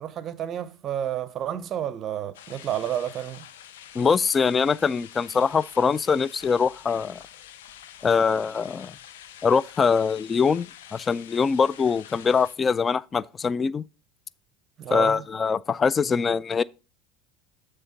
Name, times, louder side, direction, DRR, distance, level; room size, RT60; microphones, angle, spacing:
voice 1, 0.0-3.5 14.8-15.2, right 10 dB, 45° right, 0.7 m, -30 dB
sound 1, 2.3-12.6, left 10 dB, 85° left, 0.6 m, -47 dB
voice 2, 3.9-7.2 8.0-8.9 9.4-13.8 14.9-16.6, left 5 dB, 25° left, 0.3 m, -23 dB
7.2 x 3.4 x 5.7 m
hypercardioid pair, 95°, 0 cm